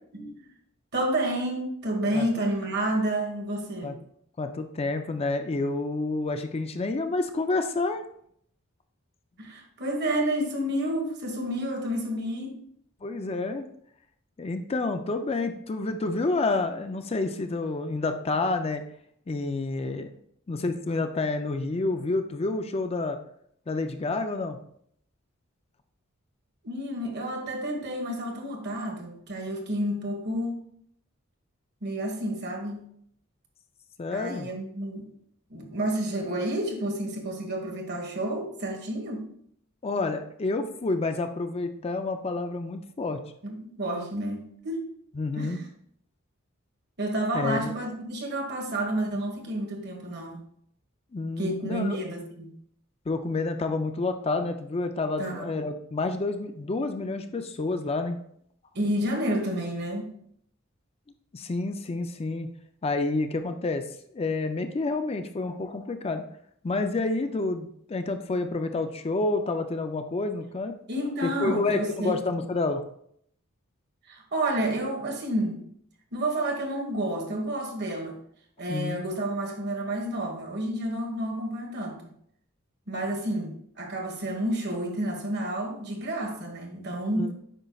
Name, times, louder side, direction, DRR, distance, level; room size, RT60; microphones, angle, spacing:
voice 1, 0.9-3.9 9.4-12.6 26.6-30.6 31.8-32.9 34.1-35.1 35.5-39.3 43.4-44.8 45.3-45.7 47.0-50.4 51.4-52.5 55.2-55.5 58.7-60.1 70.9-72.1 74.1-75.6 76.1-78.2 78.6-82.1 82.9-87.3, right 1 dB, 55° right, 2 dB, 1.4 m, -30 dB
voice 2, 4.4-8.0 13.0-13.7 14.4-18.8 19.3-20.1 20.5-23.2 23.7-24.6 34.0-34.5 39.8-43.2 45.2-45.6 47.3-47.7 51.1-52.0 53.1-58.2 61.3-62.5 62.8-63.8 64.1-66.3 66.6-70.8 71.2-72.8 78.7-79.0 87.1-87.3, left 3 dB, 30° left, 7 dB, 0.4 m, -29 dB
8.9 x 5.4 x 2.3 m, 0.68 s
head